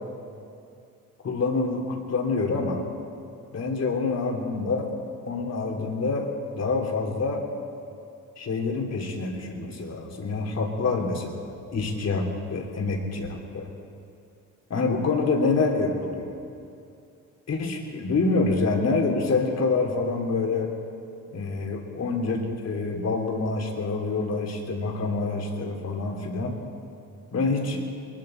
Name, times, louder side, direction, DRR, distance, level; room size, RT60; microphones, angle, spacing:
voice 1, 1.2-2.8 3.5-4.9 5.2-7.4 8.4-13.7 14.7-16.3 17.5-20.7 21.3-26.6 27.3-27.8, left 3 dB, 45° left, 1 dB, 2.8 m, -26 dB
21.0 x 12.0 x 4.4 m, 2.6 s
supercardioid pair, 70°, 35 cm